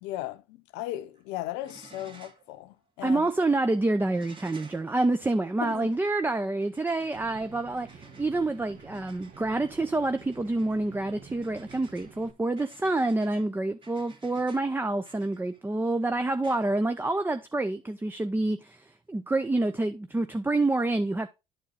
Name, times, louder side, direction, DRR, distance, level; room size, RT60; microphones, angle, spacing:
voice 1, 0.0-3.3 5.6-6.0, left 15 dB, 75° left, 0.8 m, -37 dB
sound 1, 1.0-1.3 1.6-2.5 2.9-3.0 4.1-17.5 18.9-19.0, right 3 dB, 25° right, 2.1 m, -56 dB
voice 2, 3.0-21.3, right 2 dB, 10° right, 0.7 m, -27 dB
sound 2, 7.1-12.3, right 5 dB, 50° right, 1.7 m, -49 dB
11.0 x 4.4 x 3.8 m
supercardioid pair, 80°, 18 cm